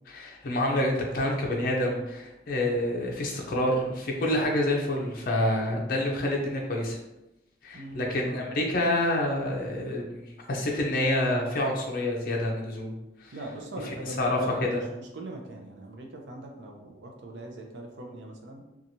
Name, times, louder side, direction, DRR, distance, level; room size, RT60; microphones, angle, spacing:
voice 1, 0.1-7.0 7.6-12.9 13.2-13.3 13.8-14.8, left 1 dB, 55° left, -1 dB, 0.5 m, -28 dB
voice 2, 7.7-8.5 13.3-18.6, right 1 dB, 90° right, 2 dB, 0.5 m, -40 dB
2.9 x 2.3 x 2.6 m, 0.95 s
head